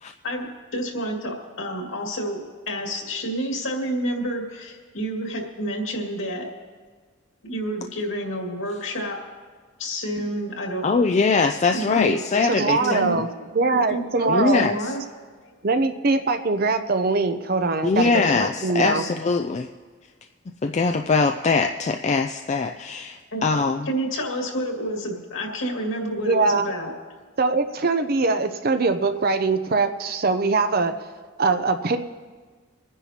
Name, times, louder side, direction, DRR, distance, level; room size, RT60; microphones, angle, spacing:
voice 1, 0.7-6.5 7.4-9.2 9.8-10.8 11.7-12.2 12.8-13.2 13.7-15.0 15.4-15.5 18.8-19.0 23.3-23.4 23.9-26.9, equal, 70° left, 0 dB, 2.2 m, -29 dB
voice 2, 10.8-13.1 14.3-14.9 17.8-19.7 20.6-23.9, left 4 dB, 35° left, 5 dB, 0.3 m, -22 dB
voice 3, 12.5-13.3 13.5-14.6 15.6-19.0 26.2-26.7 27.4-30.9 31.4-32.0, right 3 dB, 45° right, 9 dB, 0.5 m, -22 dB
27.5 x 9.9 x 2.8 m, 1.5 s
head